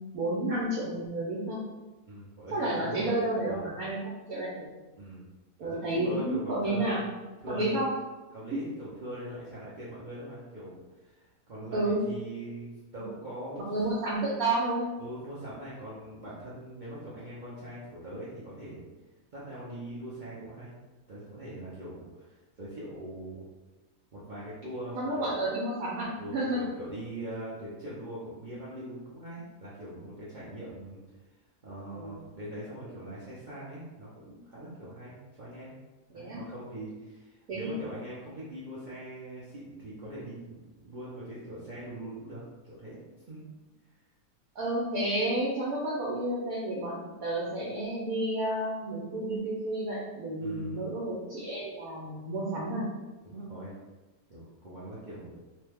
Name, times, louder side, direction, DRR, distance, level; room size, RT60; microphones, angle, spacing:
voice 1, 0.1-1.6 2.5-4.7 5.6-7.0 7.5-7.9 11.7-12.0 13.6-14.9 24.9-26.6 31.9-32.1 36.1-36.4 37.5-37.7 44.5-52.9, right 1 dB, 75° right, -6 dB, 1.1 m, -31 dB
voice 2, 2.0-3.1 3.4-3.7 5.0-5.3 5.6-7.0 7.4-7.8 8.3-12.7 12.9-13.6 15.0-18.9 19.3-20.8 21.1-23.5 24.1-25.3 26.2-31.0 31.6-35.7 36.1-43.0 43.3-43.5 50.4-50.9 53.2-53.7 54.3-55.4, right 1 dB, 50° right, -9 dB, 0.6 m, -42 dB
3.1 x 2.1 x 3.3 m, 1.1 s
omnidirectional pair, 1.6 m